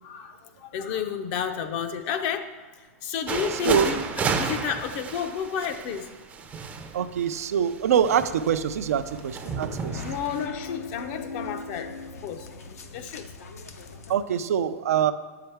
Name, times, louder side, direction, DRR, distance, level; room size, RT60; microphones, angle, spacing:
voice 1, 0.0-4.0 4.4-6.1 10.0-13.3, left 7 dB, 45° left, 7 dB, 0.5 m, -31 dB
sound 1, 3.3-10.5, right 5 dB, 20° right, 0.4 m, -32 dB
voice 2, 6.9-10.0 14.1-15.1, right 8 dB, 80° right, 11 dB, 0.4 m, -24 dB
sound 2, 9.0-14.2, left 4 dB, 85° left, 0.6 m, -40 dB
7.0 x 5.7 x 3.4 m, 1.4 s
hypercardioid pair, 130°, 8 cm